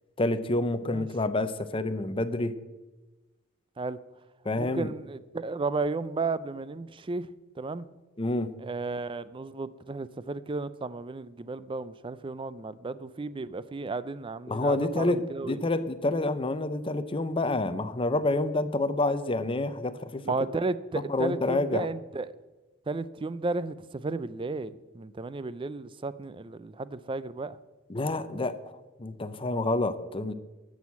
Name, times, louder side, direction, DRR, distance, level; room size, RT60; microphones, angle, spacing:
voice 1, 0.2-2.6 4.4-4.9 8.2-8.5 14.5-20.2 20.9-21.9 27.9-30.3, left 2 dB, 25° left, 12 dB, 0.6 m, -28 dB
voice 2, 4.6-7.3 7.6-7.9 8.6-15.7 20.3-22.3 22.9-27.6, right 3 dB, 25° right, 16 dB, 0.4 m, -33 dB
13.0 x 6.3 x 8.3 m, 1.2 s
head